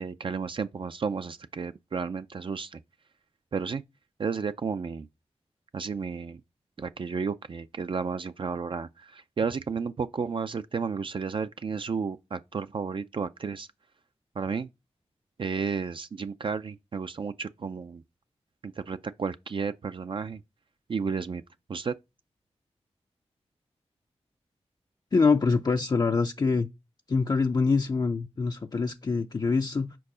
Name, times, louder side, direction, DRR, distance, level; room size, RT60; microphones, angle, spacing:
voice 1, 0.0-2.8 3.5-3.8 4.2-5.1 5.7-6.4 6.8-13.7 14.4-14.7 15.4-18.0 18.6-20.4 20.9-21.4 21.7-21.9, right 5 dB, 50° right, 0.4 m, -32 dB
voice 2, 25.1-26.7 27.1-30.0, left 4 dB, 35° left, 0.4 m, -25 dB
4.7 x 4.6 x 4.9 m
cardioid pair, 50°, 11 cm